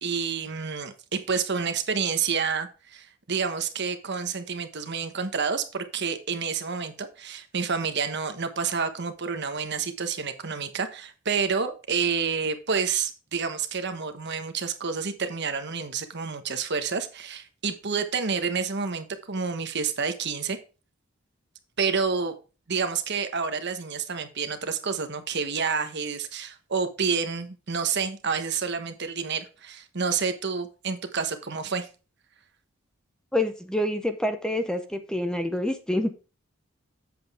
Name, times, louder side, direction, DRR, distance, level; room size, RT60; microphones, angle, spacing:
voice 1, 0.0-20.6 21.8-22.3 22.7-31.9, right 5 dB, 55° right, 1.2 m, -29 dB
voice 2, 33.3-36.1, left 1 dB, 5° left, 0.7 m, -27 dB
7.9 x 7.6 x 3.5 m
head